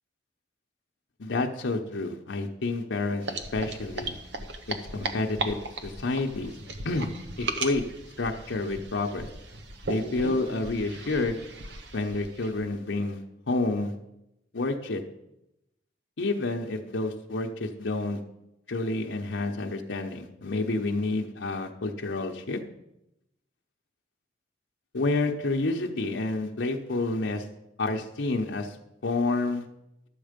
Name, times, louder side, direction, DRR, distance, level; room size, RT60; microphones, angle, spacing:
voice 1, 1.2-4.2 4.9-5.6 5.8-6.5 6.8-7.1 7.4-7.8 8.2-9.3 9.9-11.4 11.9-13.2 13.5-13.9 14.5-15.0 16.2-18.2 18.7-22.6 24.9-27.5 27.8-28.8 29.0-29.6, left 2 dB, 90° left, 2 dB, 0.9 m, -29 dB
sound 1, 3.2-12.7, right 2 dB, 70° right, 0.9 m, -37 dB
11.5 x 7.3 x 5.1 m, 0.87 s
head